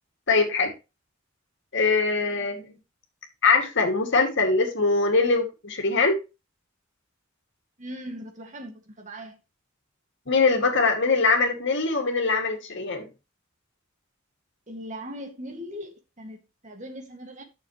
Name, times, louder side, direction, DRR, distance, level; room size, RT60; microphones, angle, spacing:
voice 1, 0.3-0.7 1.7-2.7 3.4-6.2 10.3-13.1, left 4 dB, 60° left, 2.3 m, -22 dB
voice 2, 7.8-9.4 14.7-17.4, equal, 35° right, 2.1 m, -39 dB
11.5 x 6.6 x 3.1 m
head